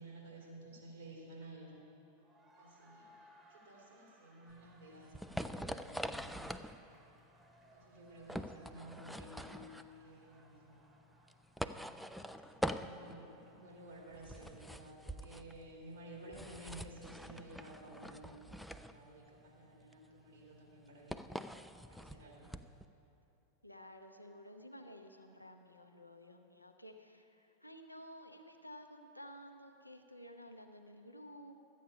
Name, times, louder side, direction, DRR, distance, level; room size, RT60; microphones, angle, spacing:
voice 1, 0.0-1.7 2.5-3.1 3.5-6.8 7.6-10.8 12.6-21.2 21.9-22.5, right 1 dB, 65° right, -2 dB, 2.7 m, -53 dB
sound 1, 2.0-14.3, right 1 dB, 15° right, 1.1 m, -66 dB
sound 2, 4.5-22.9, equal, ahead, 0.3 m, -44 dB
voice 2, 23.6-31.6, equal, 85° left, 5 dB, 0.7 m, -53 dB
12.5 x 8.4 x 5.4 m, 2.8 s
figure-of-eight pair, 90°, 0 cm